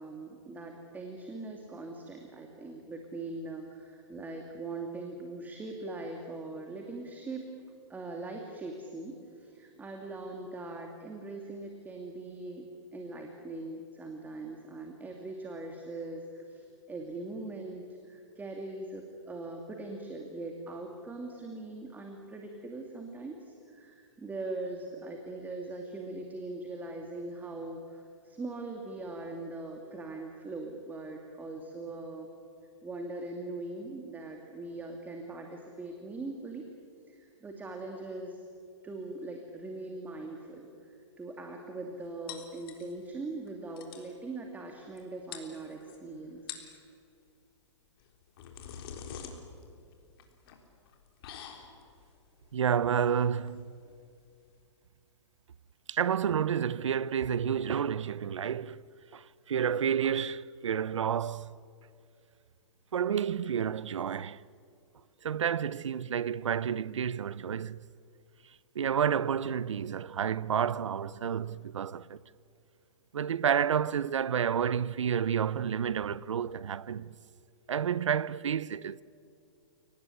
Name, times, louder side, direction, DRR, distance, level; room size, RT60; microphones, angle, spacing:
voice 1, 0.0-7.5 7.9-32.3 32.8-36.7 37.1-38.4 38.8-46.6 63.0-63.3, right 2 dB, 10° right, 2.5 m, -41 dB
sound 1, 42.3-43.2 43.5-43.6 43.8-44.1 45.0-45.1 45.3-46.0 46.4-46.8 48.0-54.6, left 8 dB, 50° left, 3.8 m, -47 dB
voice 2, 52.5-53.7 55.9-58.8 59.1-61.6 62.9-64.4 65.2-67.9 68.7-72.2 73.1-77.2 77.7-79.0, right 8 dB, 85° right, 0.7 m, -30 dB
30.0 x 19.0 x 9.9 m
hypercardioid pair, 135°, 15 cm